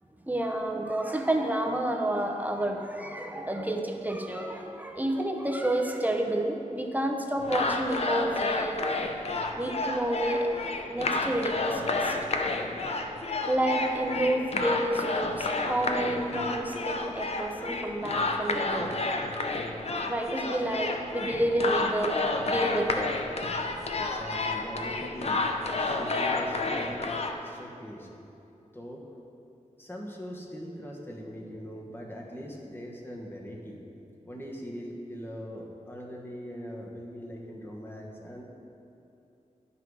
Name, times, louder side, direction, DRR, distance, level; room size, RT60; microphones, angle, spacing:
voice 1, 0.2-9.1 9.5-12.2 12.6-12.7 13.5-18.9 20.1-23.1 23.4-23.8, right 1 dB, 10° right, 2 dB, 0.7 m, -30 dB
sound 1, 7.4-27.3, left 3 dB, 50° left, 0.6 m, -30 dB
voice 2, 23.9-25.4 25.8-27.1 27.4-28.1 28.7-29.0 29.8-33.8 34.2-38.4, equal, 15° left, -1 dB, 1.2 m, -41 dB
11.0 x 5.8 x 4.8 m, 2.8 s
wide cardioid pair, 105°, 13 cm